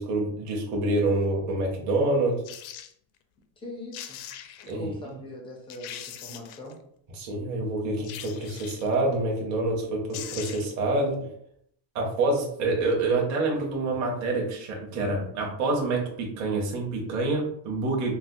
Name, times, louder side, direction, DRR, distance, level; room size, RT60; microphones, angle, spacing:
voice 1, 0.0-2.4 4.7-4.9 7.2-11.3 11.9-18.2, right 2 dB, 35° right, -1 dB, 0.8 m, -27 dB
sound 1, 2.4-2.9 3.6-3.7 3.9-4.7 5.3-5.4 5.7-6.7 8.0-8.9 9.8-9.9 10.1-10.8 11.1-11.2, left 10 dB, 70° left, 0.5 m, -41 dB
voice 2, 3.6-4.2 4.6-6.8, left 1 dB, 10° left, -1 dB, 0.3 m, -41 dB
4.3 x 2.0 x 2.5 m, 0.68 s
cardioid pair, 160°, 49 cm